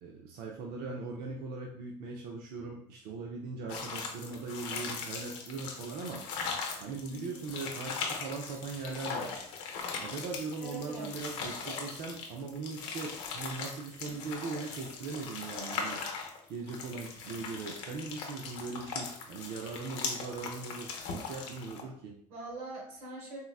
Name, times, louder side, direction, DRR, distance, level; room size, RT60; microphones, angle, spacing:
voice 1, 0.0-6.2 6.8-9.4 10.0-16.0 16.5-22.2, right 4 dB, 60° right, 0 dB, 0.5 m, -40 dB
sound 1, 3.7-21.8, left 5 dB, 75° left, 0.7 m, -39 dB
voice 2, 10.6-11.7 22.3-23.4, right 2 dB, 85° right, -1 dB, 0.9 m, -43 dB
3.8 x 2.1 x 2.3 m, 0.62 s
supercardioid pair, 85°, 18 cm